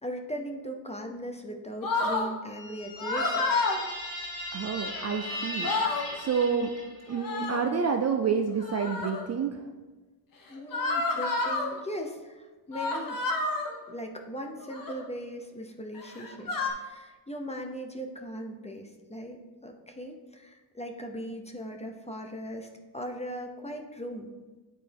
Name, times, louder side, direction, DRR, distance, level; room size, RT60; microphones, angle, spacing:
voice 1, 0.0-3.5 10.5-13.3 13.9-22.7 22.9-24.3, equal, 15° left, 4 dB, 0.6 m, -39 dB
sound 1, 1.8-2.3 3.0-3.8 5.1-5.2 5.5-6.1 7.1-7.7 8.6-9.2 10.7-11.7 12.7-13.7 14.6-15.0 15.9-16.7, left 3 dB, 40° left, 1.1 m, -29 dB
sound 2, 2.5-7.2, left 1 dB, 60° left, 2.2 m, -38 dB
voice 2, 4.5-5.7 6.1-6.7 7.1-9.6, right 6 dB, 35° right, 4 dB, 0.4 m, -28 dB
10.0 x 4.2 x 3.4 m, 1.3 s
cardioid pair, 100°, 50 cm